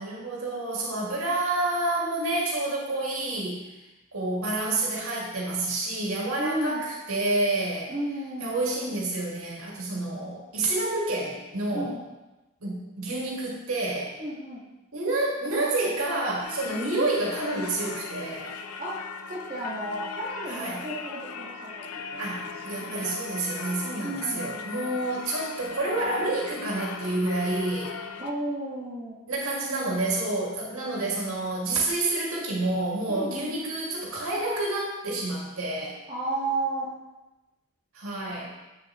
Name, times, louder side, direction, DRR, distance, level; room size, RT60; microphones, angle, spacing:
voice 1, 0.0-3.6 4.1-7.9 8.4-12.0 12.6-14.1 14.9-18.5 20.5-20.8 22.2-27.9 29.3-36.0 37.9-38.5, right 2 dB, 80° right, -4 dB, 2.2 m, -29 dB
voice 2, 6.4-6.8 7.9-8.5 11.7-12.1 14.2-14.7 18.8-19.0 19.3-23.1 24.0-24.7 28.2-29.2 33.1-33.6 36.1-36.9, right 1 dB, 30° right, -10 dB, 1.6 m, -33 dB
Singing / Church bell, 16.4-28.3, left 5 dB, 90° left, 0.5 m, -38 dB
8.6 x 6.7 x 3.0 m, 1.0 s
head